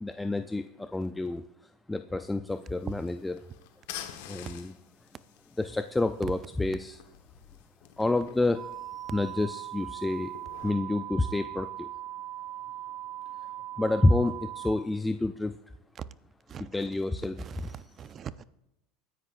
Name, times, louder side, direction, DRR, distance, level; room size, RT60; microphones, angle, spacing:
voice 1, 0.0-1.4 1.9-3.4 4.3-4.7 5.6-7.0 8.0-8.6 9.1-10.3 10.6-11.9 13.8-15.6 16.6-17.4, left 2 dB, 10° left, 8 dB, 0.5 m, -28 dB
sound 1, 2.5-10.7, left 11 dB, 80° left, 1.3 m, -49 dB
sound 2, 8.5-14.7, right 13 dB, 65° right, 2.4 m, -40 dB
voice 2, 16.5-16.9 17.4-18.4, right 8 dB, 35° right, 15 dB, 0.6 m, -43 dB
23.5 x 10.0 x 2.6 m, 0.88 s
supercardioid pair, 115°, 0 cm